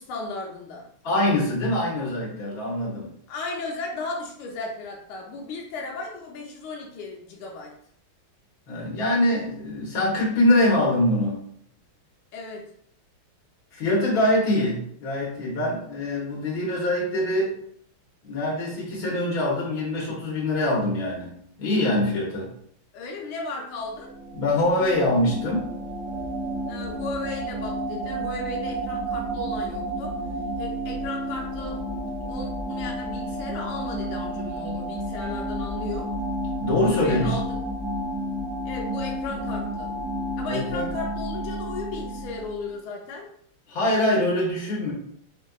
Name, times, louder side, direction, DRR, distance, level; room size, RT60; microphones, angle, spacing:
voice 1, 0.0-0.9 3.3-7.7 12.3-12.7 22.9-24.1 26.7-30.2 30.6-31.9 32.3-36.1 36.9-37.6 38.6-39.9 40.4-43.3, left 3 dB, 80° left, 0 dB, 1.5 m, -35 dB
voice 2, 1.0-3.1 8.7-11.5 13.7-17.6 18.2-22.5 24.3-25.7 36.6-37.4 40.5-40.9 43.7-44.9, left 1 dB, 50° left, -4 dB, 1.5 m, -24 dB
sound 1, 23.8-42.7, right 1 dB, 90° right, 0.3 m, -31 dB
4.5 x 2.6 x 2.3 m, 0.66 s
omnidirectional pair, 2.4 m